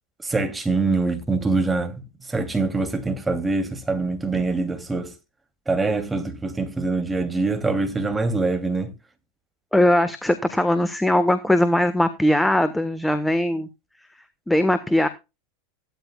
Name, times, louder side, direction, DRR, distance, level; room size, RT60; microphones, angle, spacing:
voice 1, 0.2-5.1 5.7-8.9, right 3 dB, 10° right, 2.8 m, -24 dB
voice 2, 9.7-13.7 14.5-15.1, left 1 dB, 5° left, 1.4 m, -20 dB
16.0 x 12.5 x 2.4 m
hypercardioid pair, 90°, 0 cm